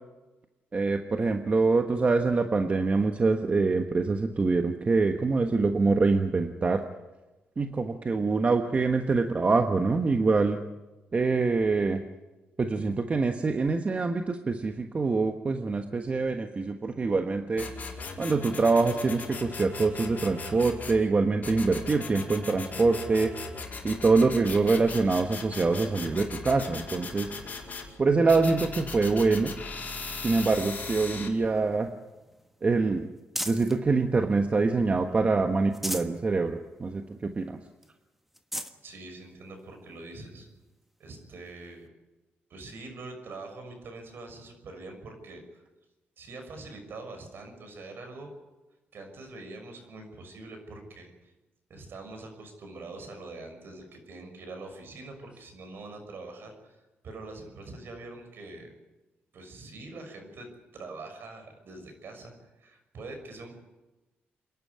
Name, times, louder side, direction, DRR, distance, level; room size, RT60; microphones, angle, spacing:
voice 1, 0.7-6.8 7.6-10.6 11.1-12.0 12.6-17.7 18.2-23.3 23.8-27.3 28.0-29.5 30.2-31.9 32.6-33.1 33.5-37.6, right 3 dB, 30° right, 6 dB, 1.4 m, -25 dB
sound 1, 17.6-21.0 21.4-27.9 28.3-31.3, left 4 dB, 40° left, 5.2 m, -38 dB
sound 2, 31.2-33.8 34.3-35.1 35.5-36.2 36.7-36.8 37.1-37.2 37.8-37.9 38.3-38.8 39.6-39.7 41.5-41.6, equal, 5° right, 1.5 m, -39 dB
voice 2, 38.8-40.5 41.0-41.9 42.5-45.6 46.2-48.3 48.9-51.3 51.7-58.7 59.3-63.5, right 2 dB, 60° right, 5 dB, 6.3 m, -44 dB
28.0 x 11.0 x 9.8 m, 1.1 s
cardioid pair, 100°, 4 cm